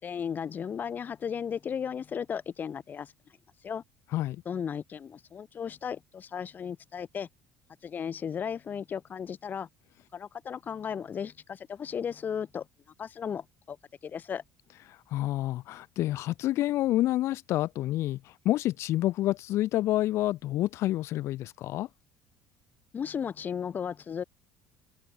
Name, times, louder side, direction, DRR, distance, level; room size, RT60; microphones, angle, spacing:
voice 1, 0.0-3.1 3.6-3.8 4.5-7.3 7.8-9.7 10.1-12.7 13.0-13.8 14.0-14.4 22.9-24.2, left 7 dB, 35° left, 2.4 m, -35 dB
voice 2, 14.9-21.9, left 15 dB, 65° left, 2.3 m, -28 dB
cardioid pair, 105°, 5 cm